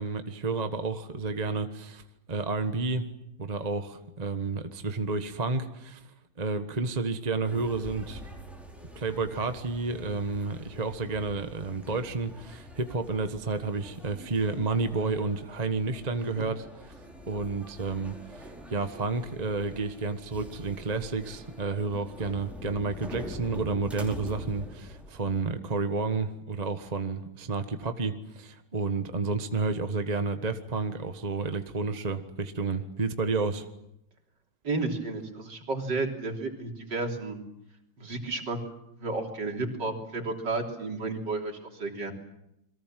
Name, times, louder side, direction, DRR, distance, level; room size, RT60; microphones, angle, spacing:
voice 1, 0.0-2.0 2.3-3.1 3.4-8.3 8.9-16.7 17.3-33.7, right 4 dB, 25° right, 8 dB, 1.3 m, -31 dB
sound 1, 7.4-25.4, equal, ahead, 5.2 m, -45 dB
voice 2, 34.6-37.4 38.0-38.6 39.0-42.1, right 3 dB, 60° right, 3 dB, 4.0 m, -32 dB
28.5 x 23.0 x 7.6 m, 0.81 s
omnidirectional pair, 2.2 m